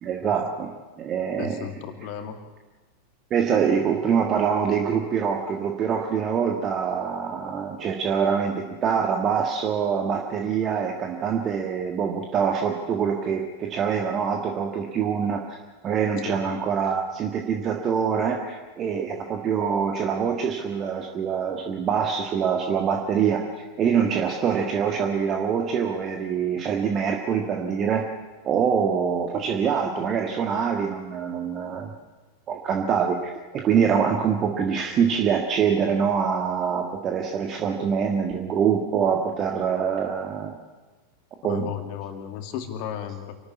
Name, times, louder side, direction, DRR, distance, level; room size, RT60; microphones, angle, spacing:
voice 1, 0.0-1.6 3.3-15.4 15.8-23.4 23.8-28.0 28.4-31.9 32.5-40.6 41.4-41.7, right 7 dB, 30° right, 3 dB, 1.7 m, -25 dB
voice 2, 1.4-2.4 16.2-16.4 41.4-43.4, left 9 dB, 45° left, 6 dB, 2.4 m, -34 dB
26.5 x 12.5 x 8.4 m, 1.2 s
figure-of-eight pair, 90°, 0 cm